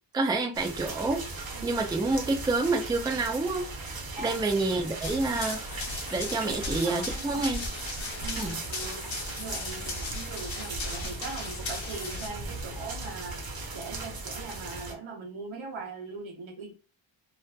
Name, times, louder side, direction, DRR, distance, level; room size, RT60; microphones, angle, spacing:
voice 1, 0.1-3.7 4.2-5.8 6.1-7.6 8.4-8.6, right 3 dB, 10° right, 0.3 m, -28 dB
sound 1, 0.5-14.9, right 3 dB, 50° right, 0.7 m, -38 dB
Run, 5.0-12.3, left 2 dB, 70° left, 0.9 m, -37 dB
voice 2, 6.4-7.5 8.2-9.1 9.4-13.4 13.7-16.8, right 4 dB, 75° right, 0.8 m, -40 dB
2.6 x 2.3 x 2.2 m
wide cardioid pair, 95°, 47 cm